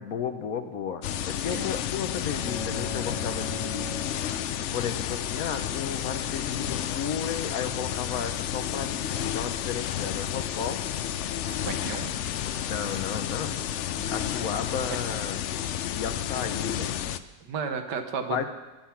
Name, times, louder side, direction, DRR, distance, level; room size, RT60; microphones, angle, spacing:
voice 1, 0.0-3.9 4.7-10.8 12.7-13.5 14.1-15.4 15.8-17.1 18.3-18.5, left 7 dB, 60° left, 8 dB, 1.2 m, -33 dB
sound 1, 1.0-17.2, left 10 dB, 85° left, 0.6 m, -31 dB
voice 2, 1.3-1.7 11.5-12.1 13.9-14.2 15.2-15.3 17.4-18.5, right 5 dB, 80° right, 7 dB, 1.6 m, -34 dB
sound 2, 2.3-4.9, left 2 dB, 30° left, 2.1 m, -38 dB
sound 3, 9.7-11.8, right 1 dB, 15° right, 2.2 m, -53 dB
12.0 x 10.5 x 5.8 m, 1.1 s
omnidirectional pair, 1.8 m